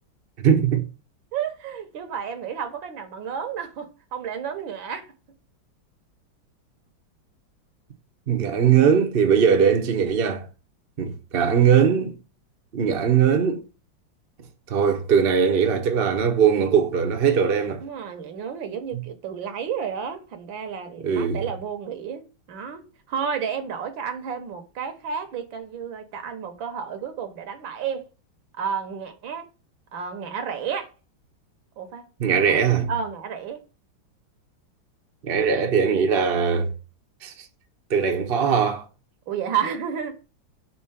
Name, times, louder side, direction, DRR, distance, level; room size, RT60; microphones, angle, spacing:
voice 1, 0.4-0.8 8.3-10.5 11.0-12.2 12.7-13.6 14.7-17.8 21.0-21.4 32.2-32.9 35.2-36.7 37.2-37.3 37.9-38.8, right 7 dB, 40° right, 0.8 m, -20 dB
voice 2, 1.3-5.1 17.8-28.1 28.6-29.5 29.9-30.9 31.8-32.1 32.5-32.6 32.9-33.6 39.3-40.2, right 7 dB, 75° right, 1.8 m, -31 dB
4.4 x 4.1 x 5.5 m
omnidirectional pair, 2.2 m